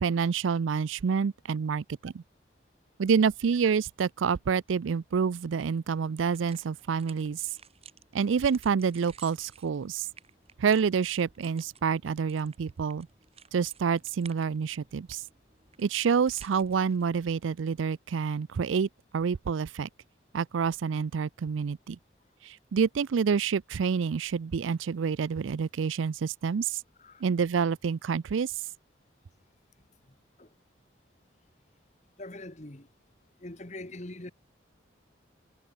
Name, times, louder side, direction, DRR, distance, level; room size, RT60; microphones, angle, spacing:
voice 1, 0.0-2.2 3.0-7.5 8.1-10.1 10.6-13.1 13.5-15.2 15.8-19.9 20.3-22.0 22.4-26.8 27.2-28.5, right 6 dB, 90° right, 0.4 m, -28 dB
sound 1, 6.2-17.0, right 8 dB, 30° right, 3.4 m, -54 dB
voice 2, 30.1-30.5 32.2-32.9 33.4-34.3, left 1 dB, 35° left, 1.7 m, -43 dB
head